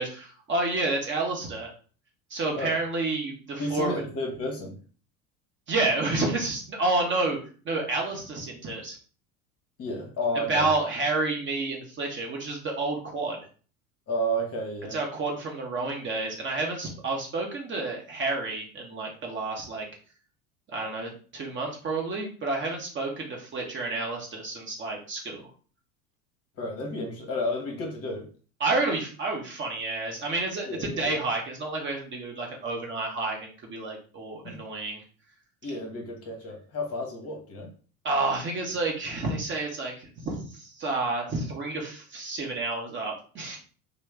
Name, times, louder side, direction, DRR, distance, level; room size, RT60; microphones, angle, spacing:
voice 1, 0.0-1.7 2.3-3.9 5.7-7.4 7.6-9.0 10.5-13.4 14.9-19.8 20.7-25.5 28.6-35.0 38.0-43.6, right 3 dB, 25° right, 0 dB, 0.8 m, -30 dB
voice 2, 3.6-4.8 9.8-10.7 14.1-15.0 26.6-28.3 30.7-31.1 34.4-34.6 35.6-37.7, equal, 35° left, 1 dB, 0.9 m, -31 dB
3.2 x 2.0 x 3.2 m, 0.40 s
figure-of-eight pair, 70°, 44 cm